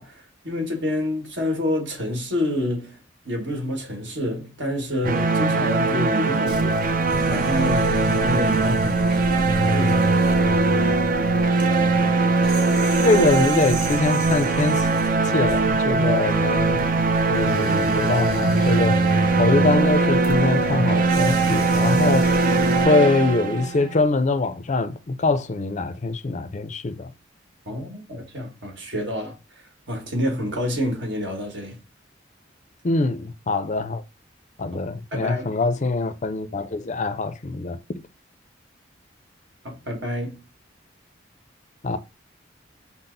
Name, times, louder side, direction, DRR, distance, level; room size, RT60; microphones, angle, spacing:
voice 1, 0.0-3.0 3.2-6.9 7.3-7.9 8.2-10.6 27.6-29.3 29.9-31.8 34.7-34.8 35.1-35.6 39.6-40.4, left 1 dB, 65° right, 1.6 m, -28 dB
sound 1, 5.0-24.0, right 3 dB, 45° right, 0.5 m, -21 dB
sound 2, 6.5-22.9, left 1 dB, 25° right, 1.2 m, -31 dB
voice 2, 13.0-14.9 15.3-17.0 17.3-19.0 19.4-22.3 22.8-27.1 32.8-34.0 34.6-37.8 41.8-42.0, left 3 dB, 40° left, 0.5 m, -23 dB
5.8 x 2.0 x 3.9 m
head